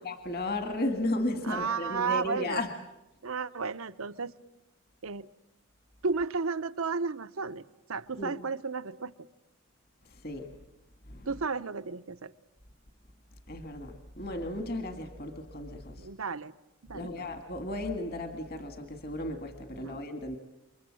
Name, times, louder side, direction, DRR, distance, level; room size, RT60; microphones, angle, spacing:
voice 1, 0.0-2.7 8.2-8.4 10.2-10.5 11.1-11.3 13.5-16.1 16.9-20.4, left 1 dB, 45° left, 6 dB, 2.0 m, -34 dB
voice 2, 1.4-2.6 3.2-4.3 5.0-5.3 6.0-9.1 11.3-12.3 16.0-16.5 16.8-17.3 19.7-20.0, right 4 dB, 80° right, 13 dB, 0.9 m, -33 dB
29.5 x 24.0 x 7.7 m, 0.92 s
head